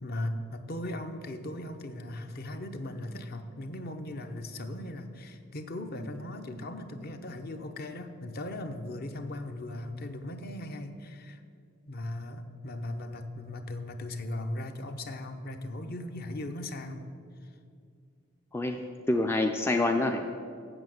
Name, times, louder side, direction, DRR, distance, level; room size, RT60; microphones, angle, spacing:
voice 1, 0.0-11.4 11.9-17.1 17.4-17.5, left 1 dB, 45° left, 7 dB, 0.7 m, -38 dB
voice 2, 18.5-20.2, left 2 dB, 10° left, 4 dB, 0.3 m, -27 dB
8.0 x 7.2 x 7.7 m, 2.3 s
head